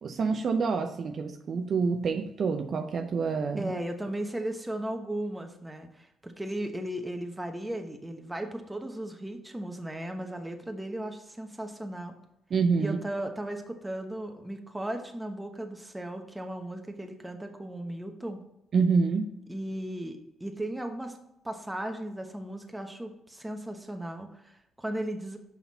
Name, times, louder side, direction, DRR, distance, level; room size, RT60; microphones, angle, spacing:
voice 1, 0.0-3.7 12.5-13.0 18.7-19.3, right 5 dB, 55° right, 5 dB, 0.6 m, -27 dB
voice 2, 3.6-12.1 12.8-18.4 19.5-21.2 21.4-25.4, right 1 dB, 10° right, 4 dB, 1.0 m, -36 dB
5.9 x 5.8 x 4.2 m, 0.85 s
cardioid pair, 90°, 0 cm